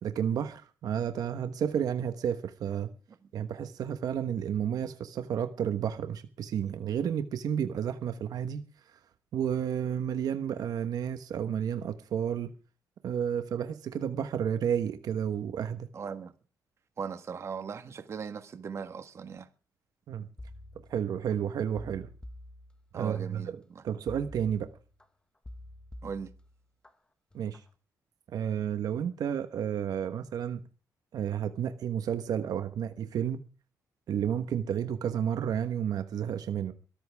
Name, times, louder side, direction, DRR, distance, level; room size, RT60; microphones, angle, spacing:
voice 1, 0.0-2.9 3.3-8.6 9.3-12.5 13.0-15.9 20.1-20.3 20.9-22.1 22.9-23.6 23.8-24.7 27.3-27.6 28.3-30.6 31.1-33.4 34.1-36.7, right 8 dB, 70° right, 1.3 m, -31 dB
voice 2, 15.9-16.3 17.0-19.5 22.9-23.8 26.0-26.3, right 6 dB, 45° right, 1.5 m, -38 dB
sound 1, 20.4-21.4 21.8-23.2 24.1-25.0 25.4-26.9 27.3-27.7, left 1 dB, 15° left, 1.3 m, -48 dB
22.5 x 13.5 x 3.6 m
cardioid pair, 140°, 7 cm